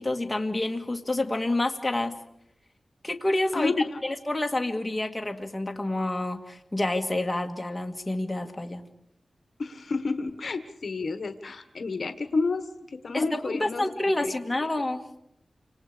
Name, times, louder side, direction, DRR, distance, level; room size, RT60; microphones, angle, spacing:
voice 1, 0.0-2.2 3.0-3.7 4.0-8.8 13.1-15.0, left 2 dB, 15° left, 3 dB, 1.9 m, -28 dB
voice 2, 3.5-4.0 9.6-14.3, left 3 dB, 60° left, 9 dB, 1.3 m, -30 dB
29.5 x 26.5 x 5.0 m, 0.76 s
wide cardioid pair, 120°, 0 cm